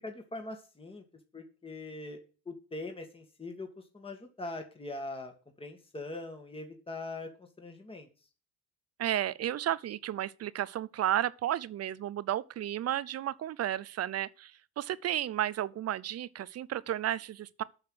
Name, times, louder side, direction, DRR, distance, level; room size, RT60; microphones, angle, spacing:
voice 1, 0.0-1.0 1.3-2.2 2.5-3.7 3.9-5.3 5.6-8.1, left 2 dB, 15° left, 1.9 m, -42 dB
voice 2, 9.0-17.6, right 12 dB, 45° right, 0.6 m, -33 dB
8.9 x 5.8 x 7.6 m
supercardioid pair, 90°, 36 cm